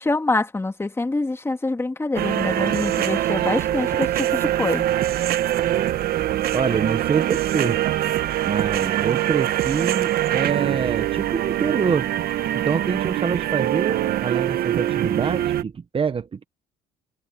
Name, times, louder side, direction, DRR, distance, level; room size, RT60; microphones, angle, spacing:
voice 1, 0.0-4.8, left 2 dB, 15° left, 2.3 m, -25 dB
sound 1, 2.2-15.6, right 13 dB, 65° right, 1.2 m, -23 dB
voice 2, 6.5-7.8 8.5-12.1 12.6-16.4, right 6 dB, 30° right, 1.3 m, -25 dB
cardioid pair, 110°, 17 cm